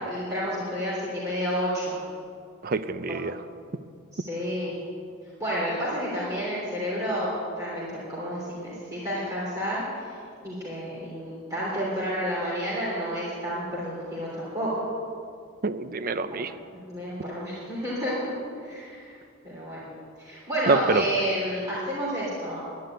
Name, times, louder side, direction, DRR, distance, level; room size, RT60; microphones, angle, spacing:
voice 1, 0.0-2.0 4.1-4.8 5.4-10.2 10.4-14.7 16.9-18.3 18.6-19.1 19.4-19.9 20.2-22.6, equal, 15° right, -8 dB, 3.1 m, -30 dB
voice 2, 2.6-3.4 15.6-16.5 20.7-21.0, right 3 dB, 40° right, 13 dB, 0.5 m, -26 dB
11.5 x 10.5 x 9.3 m, 2.3 s
head